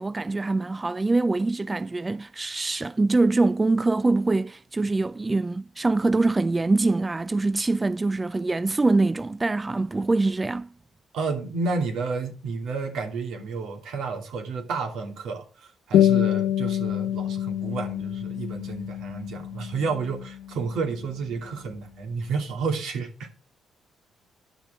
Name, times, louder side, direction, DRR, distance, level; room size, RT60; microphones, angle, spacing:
voice 1, 0.0-10.7, right 3 dB, 20° right, 0.3 m, -24 dB
voice 2, 11.1-23.3, right 4 dB, 80° right, 2.8 m, -31 dB
sound 1, 15.9-20.9, left 11 dB, 85° left, 0.9 m, -26 dB
10.5 x 6.1 x 5.2 m
cardioid pair, 90°, 0 cm